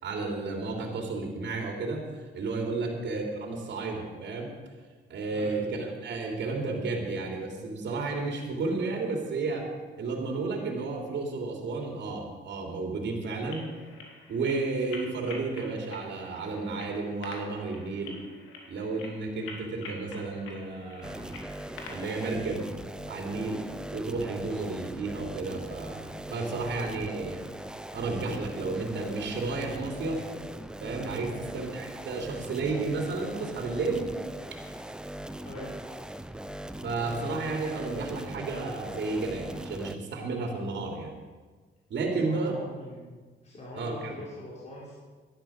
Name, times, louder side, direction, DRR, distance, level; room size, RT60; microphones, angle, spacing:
voice 1, 0.0-4.5 5.1-9.7 9.9-13.6 14.3-18.2 18.7-21.4 21.9-22.6 23.1-23.6 23.9-27.4 27.9-30.2 30.8-34.1 36.8-41.1 41.9-42.5 43.7-44.2, right 3 dB, 65° right, 1 dB, 3.2 m, -32 dB
sound 1, 13.3-22.4, left 3 dB, 85° left, 2.5 m, -47 dB
sound 2, 21.0-40.0, right 1 dB, 5° right, 0.7 m, -40 dB
voice 2, 35.4-35.7 42.2-43.1 43.4-44.9, left 1 dB, 35° left, -6 dB, 4.8 m, -43 dB
12.0 x 11.0 x 6.5 m, 1.4 s
cardioid pair, 90°, 20 cm